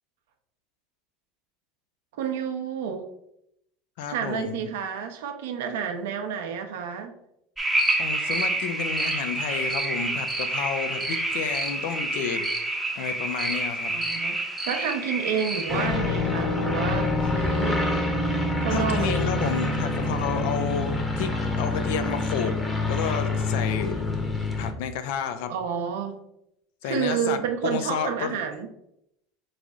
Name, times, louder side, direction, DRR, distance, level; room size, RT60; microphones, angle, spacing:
voice 1, 2.1-3.1 4.1-7.1 13.9-14.4 14.7-17.9 18.6-19.5 25.5-26.2 26.8-28.7, right 7 dB, 80° right, 6 dB, 0.7 m, -30 dB
voice 2, 4.0-4.6 8.0-12.4 13.0-13.9 18.7-22.6 22.9-24.0 24.6-25.5 26.8-28.4, left 7 dB, 75° left, 9 dB, 0.6 m, -31 dB
sound 1, 7.6-15.9, right 2 dB, 10° right, 0.7 m, -28 dB
sound 2, 15.7-24.7, left 2 dB, 15° left, 1.0 m, -26 dB
4.0 x 3.3 x 3.5 m, 0.79 s
supercardioid pair, 115°, 0 cm